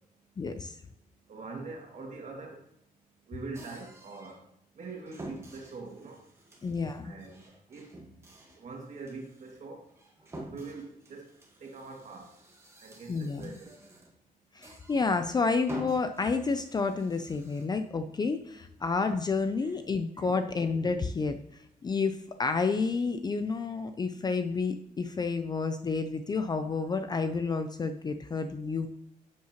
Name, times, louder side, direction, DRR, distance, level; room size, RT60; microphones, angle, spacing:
voice 1, 0.4-0.8 6.6-7.1 13.1-13.5 14.5-21.4 21.8-28.9, left 4 dB, 25° left, 8 dB, 0.5 m, -30 dB
voice 2, 1.3-2.6 3.3-4.4 4.8-6.2 7.0-7.4 7.7-7.9 8.6-9.8 10.4-11.2 11.6-12.3 12.8-13.7 19.6-19.7 20.1-20.3, right 3 dB, 55° right, 1 dB, 2.1 m, -43 dB
sound 1, 3.5-4.4 4.8-14.2 14.6-15.3 15.6-17.7, right 1 dB, 15° right, 1.5 m, -48 dB
11.5 x 7.5 x 3.0 m, 0.80 s
wide cardioid pair, 160°, 15 cm